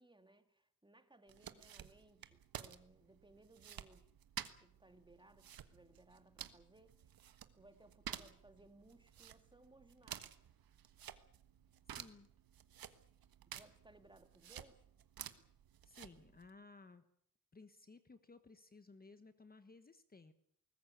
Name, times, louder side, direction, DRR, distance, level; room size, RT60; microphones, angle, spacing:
voice 1, 0.0-4.1 4.6-7.1 7.5-10.3 13.5-14.8, right 2 dB, 15° right, 9 dB, 2.0 m, -64 dB
sound 1, 1.3-16.5, right 9 dB, 85° right, 1.5 m, -53 dB
voice 2, 11.9-12.3 15.8-17.0 17.5-20.3, left 3 dB, 25° left, 11 dB, 1.3 m, -59 dB
22.0 x 19.5 x 8.4 m, 0.68 s
wide cardioid pair, 130°, 34 cm